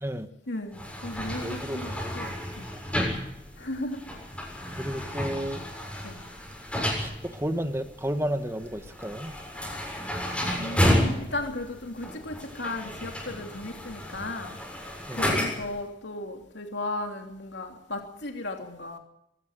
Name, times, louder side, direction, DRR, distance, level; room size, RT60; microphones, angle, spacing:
voice 1, 0.5-2.7 3.6-4.0 6.0-6.2 10.6-14.6 15.1-19.0, left 2 dB, 60° left, 3.2 m, -35 dB
sound 1, 0.7-15.8, equal, 5° left, 7.3 m, -31 dB
voice 2, 1.4-2.1 2.7-3.1 4.8-5.6 7.0-9.3 15.1-15.2, equal, 15° right, 1.5 m, -32 dB
23.0 x 17.0 x 8.2 m
head